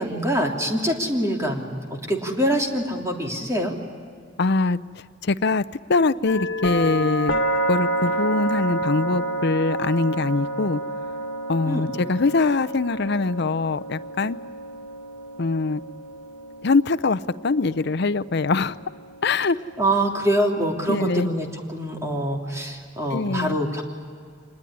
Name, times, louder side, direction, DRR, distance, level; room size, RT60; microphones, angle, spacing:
voice 1, 0.0-1.8 2.1-3.7 11.6-11.9 19.8-23.8, right 1 dB, 15° right, 0 dB, 3.1 m, -24 dB
voice 2, 4.4-4.8 5.2-5.6 5.9-7.3 7.7-10.8 11.5-14.4 15.4-15.8 16.6-18.8 19.2-19.6 20.9-21.3 23.1-23.6, left 3 dB, 60° left, 14 dB, 0.7 m, -22 dB
sound 1, 6.3-20.1, right 1 dB, 75° left, 1.5 m, -30 dB
26.5 x 20.5 x 10.0 m, 2.2 s
head